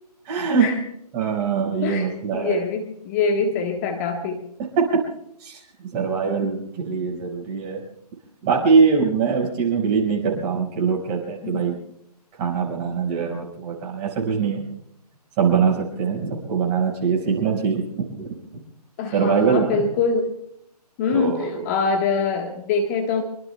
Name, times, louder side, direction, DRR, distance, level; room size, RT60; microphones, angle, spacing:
voice 1, 0.2-0.7 1.1-2.6 4.8-5.0 5.4-5.6 5.9-7.8 8.4-11.8 12.4-14.6 15.4-17.8 18.2-18.3 19.1-19.8 21.1-21.6, right 5 dB, 25° right, -2 dB, 5.1 m, -22 dB
voice 2, 2.3-4.4 11.4-11.6 19.0-20.4 21.0-23.2, left 4 dB, 25° left, 3 dB, 1.4 m, -24 dB
25.0 x 24.5 x 2.3 m, 0.72 s
figure-of-eight pair, 145°, 21 cm